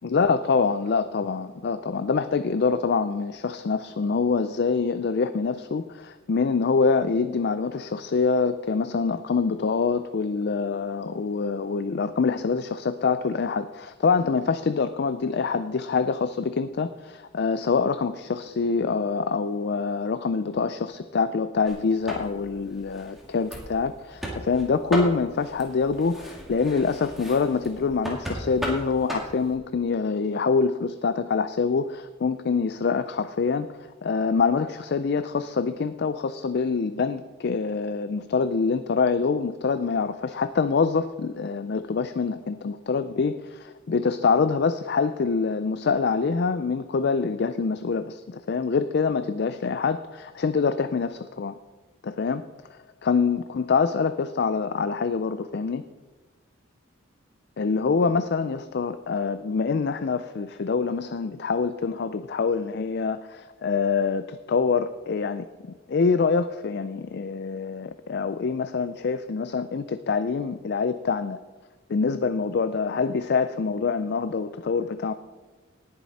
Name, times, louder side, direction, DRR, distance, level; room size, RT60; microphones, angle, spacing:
voice 1, 0.0-33.7 34.0-51.5 52.0-52.4 53.0-55.8 57.6-65.5 65.9-71.4 71.9-75.1, left 5 dB, 55° left, 11 dB, 0.4 m, -25 dB
sound 1, 21.6-29.6, equal, ahead, 2.2 m, -36 dB
19.0 x 7.3 x 4.2 m, 1.3 s
head